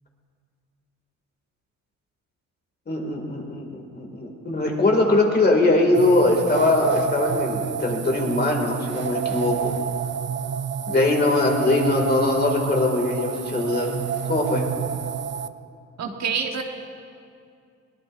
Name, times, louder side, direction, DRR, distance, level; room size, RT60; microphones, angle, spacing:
voice 1, 2.9-9.7 10.9-14.7, left 2 dB, 35° left, 1 dB, 2.6 m, -21 dB
sound 1, 5.9-15.5, right 7 dB, 40° right, 0.5 m, -29 dB
voice 2, 16.0-16.6, right 6 dB, 60° right, 3 dB, 1.5 m, -26 dB
22.0 x 18.0 x 2.7 m, 2.3 s
cardioid pair, 90°, 30 cm